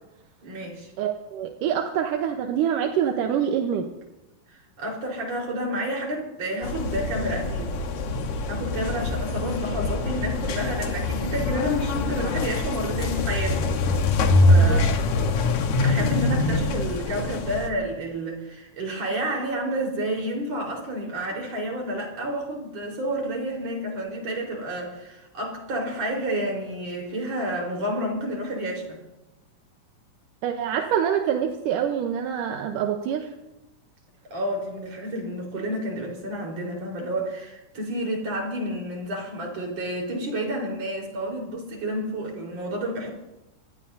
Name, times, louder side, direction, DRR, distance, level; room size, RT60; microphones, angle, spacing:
voice 1, 0.4-0.9 4.8-7.7 8.5-13.7 14.5-14.9 15.8-29.0 34.3-43.1, right 1 dB, 45° right, 0 dB, 5.4 m, -30 dB
voice 2, 1.0-3.9 8.9-9.1 14.5-14.8 30.4-33.3, right 9 dB, 70° right, 3 dB, 2.3 m, -26 dB
sound 1, 6.6-17.7, left 2 dB, 60° left, 2.3 m, -24 dB
26.5 x 19.0 x 2.8 m, 0.96 s
omnidirectional pair, 4.3 m